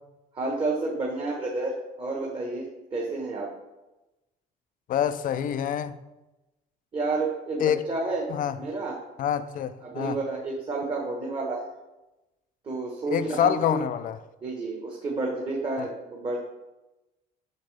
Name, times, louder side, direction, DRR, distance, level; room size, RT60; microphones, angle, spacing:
voice 1, 0.3-3.5 6.9-8.3 8.5-9.0 9.8-11.6 12.6-13.8 14.4-16.4, right 3 dB, 30° right, -1 dB, 1.2 m, -30 dB
voice 2, 4.9-6.0 7.6-7.8 8.3-8.6 9.2-10.2 13.1-14.2, left 9 dB, 55° left, 13 dB, 0.4 m, -26 dB
6.7 x 6.3 x 3.3 m, 1.0 s
cardioid pair, 110°, 17 cm